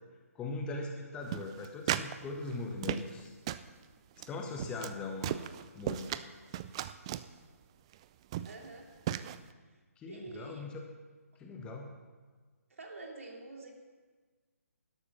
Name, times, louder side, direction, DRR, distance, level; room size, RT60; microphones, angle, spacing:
voice 1, 0.3-3.3 4.3-6.2 10.0-10.8 11.4-11.9, left 3 dB, 10° left, 2 dB, 1.0 m, -40 dB
sound 1, 1.3-2.1 2.4-3.2 3.5-3.7 4.2-4.3 4.6-4.9 5.2-6.2 6.5-7.3 7.9-8.0 8.3-8.7 9.1-9.4, right 12 dB, 20° right, 0.3 m, -35 dB
voice 2, 8.4-8.9 10.1-10.6 12.7-13.7, right 3 dB, 60° right, 1 dB, 2.8 m, -47 dB
12.5 x 12.0 x 6.0 m, 1.4 s
figure-of-eight pair, 140°, 8 cm